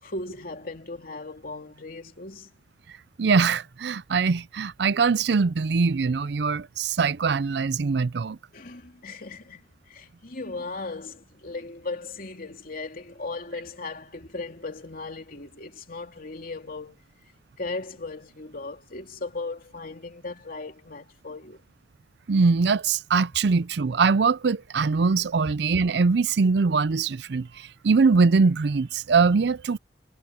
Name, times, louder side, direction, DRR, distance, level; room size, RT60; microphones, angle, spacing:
voice 1, 0.0-2.5 8.5-17.0 17.6-21.6, left 3 dB, 50° left, 3.0 m, -37 dB
voice 2, 3.2-8.4 22.3-29.8, right 4 dB, 65° right, 0.5 m, -22 dB
head